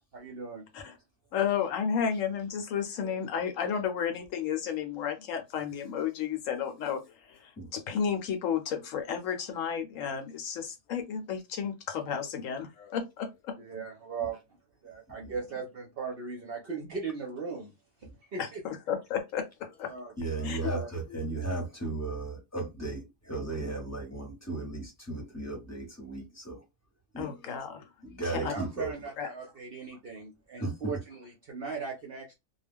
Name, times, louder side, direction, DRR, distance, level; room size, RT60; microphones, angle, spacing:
voice 1, 0.1-0.7 13.6-14.4 14.8-17.7 18.0-18.6 19.8-20.9 28.3-32.3, right 5 dB, 60° right, 0.6 m, -38 dB
voice 2, 1.3-7.0 7.3-13.6 18.4-19.9 20.4-20.6 21.1-21.2 27.2-27.8 28.4-28.5 29.2-29.3, left 7 dB, 70° left, 0.9 m, -32 dB
voice 3, 20.2-26.6 27.1-27.6 28.0-28.9 30.6-31.0, right 2 dB, 15° left, 0.7 m, -35 dB
2.3 x 2.1 x 3.4 m
omnidirectional pair, 1.5 m